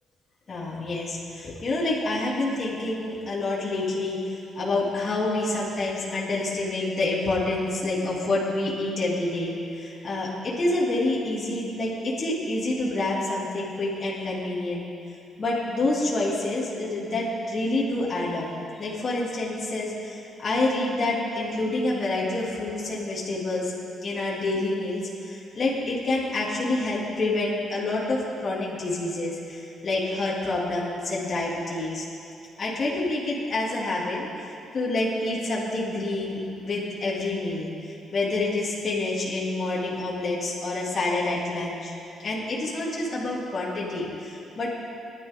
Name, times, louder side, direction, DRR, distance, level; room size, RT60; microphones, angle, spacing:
voice 1, 0.5-14.9 15.4-18.5 18.8-23.7 24.0-32.0 32.6-41.9 42.2-44.8, left 2 dB, 45° left, -6 dB, 2.9 m, -28 dB
19.5 x 11.5 x 3.8 m, 2.6 s
cardioid pair, 90°, 0 cm